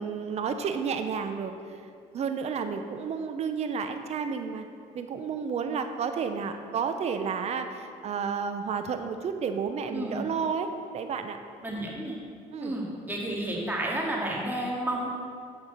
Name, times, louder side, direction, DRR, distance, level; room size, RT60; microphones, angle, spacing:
voice 1, 0.0-1.5 2.1-4.7 4.9-11.4 12.5-12.7, right 6 dB, 50° right, 7 dB, 0.9 m, -31 dB
voice 2, 9.9-10.2 11.6-12.2 12.6-15.1, right 1 dB, 15° right, -3 dB, 2.5 m, -31 dB
13.5 x 5.0 x 5.7 m, 2.3 s
cardioid pair, 95°, 14 cm